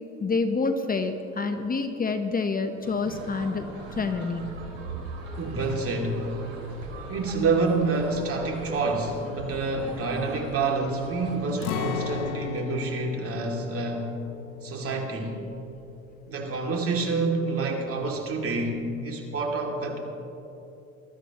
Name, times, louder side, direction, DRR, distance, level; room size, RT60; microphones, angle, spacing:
voice 1, 0.2-4.5, left 4 dB, 25° left, 7 dB, 1.0 m, -28 dB
sound 1, 2.8-12.2, right 2 dB, 80° right, 3.1 m, -40 dB
voice 2, 5.4-6.4 6.7-6.8 7.1-14.1 14.6-15.4 16.3-20.0, right 3 dB, 35° right, 1 dB, 2.7 m, -28 dB
Acoustic guitar, 11.6-17.5 17.8-18.0 18.5-19.0, left 7 dB, 60° left, 1.0 m, -37 dB
23.0 x 13.0 x 3.1 m, 2.8 s
hypercardioid pair, 75°, 38 cm